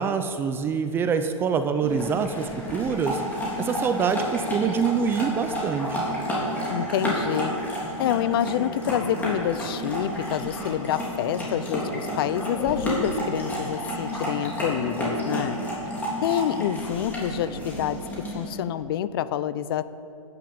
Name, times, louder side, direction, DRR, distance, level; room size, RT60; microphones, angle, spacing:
voice 1, 0.0-3.2 3.6-6.0, right 6 dB, 10° right, 9 dB, 0.4 m, -25 dB
sound 1, 1.8-18.6, equal, 10° left, 3.4 m, -31 dB
voice 2, 6.7-7.5 8.0-15.6 16.2-18.0 18.3-19.8, left 10 dB, 40° left, 15 dB, 0.6 m, -27 dB
10.5 x 10.0 x 7.0 m, 2.5 s
hypercardioid pair, 140°, 18 cm